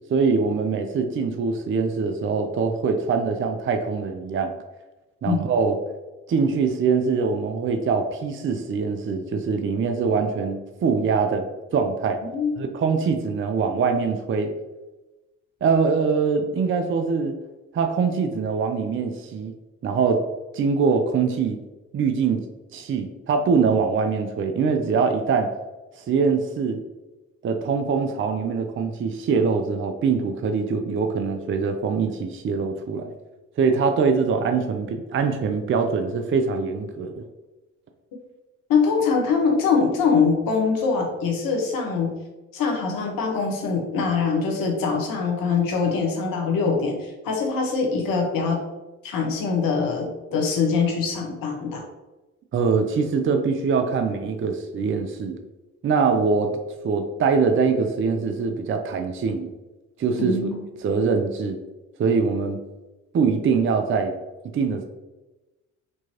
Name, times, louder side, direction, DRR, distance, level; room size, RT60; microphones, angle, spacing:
voice 1, 0.1-4.5 5.2-5.8 6.3-11.5 11.7-12.2 12.6-14.5 15.6-17.4 17.7-19.5 19.8-20.2 20.5-21.6 21.9-22.4 22.7-25.5 26.0-26.8 27.4-33.1 33.6-37.2 52.5-55.4 55.8-56.6 56.8-59.5 60.0-60.5 60.8-61.6 62.0-62.6 63.1-64.1 64.5-64.8, right 5 dB, 35° right, 6 dB, 0.5 m, -23 dB
voice 2, 38.7-42.1 42.5-48.6 49.0-51.8 60.2-60.6, left 5 dB, 60° left, 1 dB, 1.1 m, -23 dB
4.5 x 2.8 x 2.9 m, 1.1 s
hypercardioid pair, 50°, 38 cm